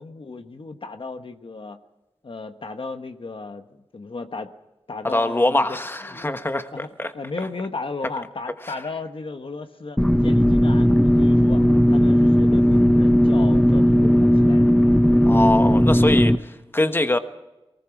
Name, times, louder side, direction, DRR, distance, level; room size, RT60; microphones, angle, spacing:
voice 1, 0.0-1.8 2.2-4.5 4.9-5.8 6.0-6.3 6.7-6.9 7.1-11.6 11.9-14.7, left 3 dB, 65° left, 7 dB, 1.3 m, -35 dB
voice 2, 5.0-6.7 7.0-7.1 15.3-17.2, left 1 dB, 25° left, 8 dB, 1.2 m, -23 dB
sound 1, 10.0-16.4, equal, 5° left, 0.9 m, -16 dB
23.0 x 19.5 x 5.9 m, 1.0 s
wide cardioid pair, 70°, 10 cm